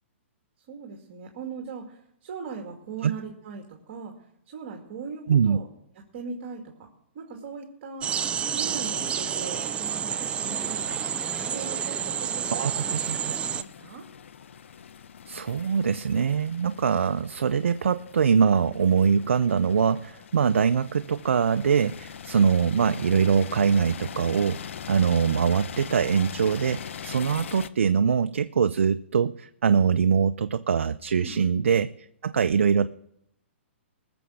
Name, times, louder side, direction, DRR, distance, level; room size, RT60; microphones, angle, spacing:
voice 1, 0.7-4.2 4.5-5.7 6.1-6.9 7.1-8.1 8.5-14.0 31.2-31.6, right 5 dB, 45° right, 1 dB, 2.4 m, -39 dB
sound 1, 8.0-13.6, right 8 dB, 15° right, 0.4 m, -29 dB
sound 2, 10.3-27.7, left 8 dB, 70° left, 0.7 m, -42 dB
voice 2, 12.5-13.2 15.3-31.9 32.2-32.9, right 6 dB, 80° right, 10 dB, 0.5 m, -23 dB
20.0 x 7.0 x 6.4 m, 0.76 s
hypercardioid pair, 135°, 7 cm